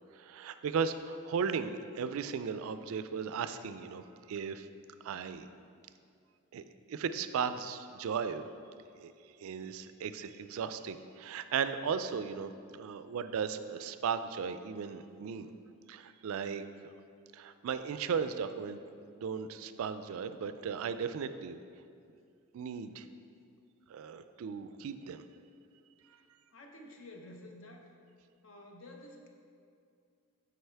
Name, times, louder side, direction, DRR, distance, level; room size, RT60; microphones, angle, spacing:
voice 1, 0.1-4.7 5.0-5.5 6.5-8.4 9.0-9.1 9.4-15.5 15.9-16.6 17.3-18.8 19.1-21.6 22.5-23.1 23.9-25.2, right 6 dB, 70° right, 11 dB, 0.3 m, -36 dB
voice 2, 26.5-27.9 28.4-29.3, left 1 dB, 60° left, 2 dB, 0.7 m, -51 dB
7.8 x 4.8 x 3.3 m, 2.4 s
head